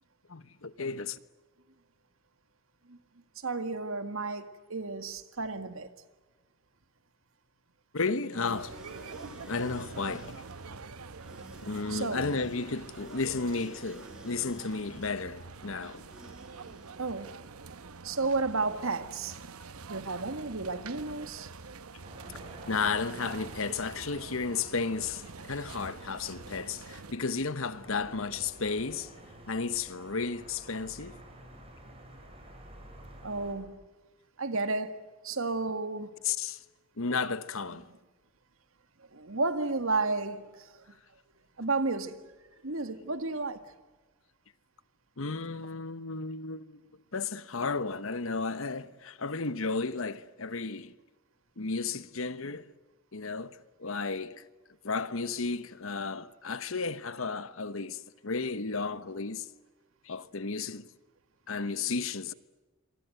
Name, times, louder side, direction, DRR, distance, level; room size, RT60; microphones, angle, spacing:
voice 1, 0.3-1.2 7.9-8.8 9.5-10.4 11.6-16.0 22.7-25.2 25.5-29.1 29.5-31.2 36.2-36.6 37.0-37.9 45.2-46.8 47.1-50.9 51.6-52.7 53.1-54.4 54.8-59.5 60.0-60.9 61.5-62.3, left 4 dB, 70° left, 1.2 m, -33 dB
voice 2, 3.4-5.9 9.2-9.5 11.9-12.2 17.0-17.4 18.0-19.4 19.9-21.5 33.2-33.8 34.4-35.0 35.2-36.1 37.7-37.8 39.1-41.0 41.6-42.2 42.6-43.7, right 3 dB, 75° right, 2.0 m, -32 dB
sound 1, 8.4-17.6, equal, 5° right, 6.2 m, -52 dB
sound 2, 8.5-27.1, right 4 dB, 90° right, 1.0 m, -46 dB
sound 3, 22.0-33.5, right 1 dB, 25° right, 6.2 m, -51 dB
28.0 x 23.5 x 7.9 m
head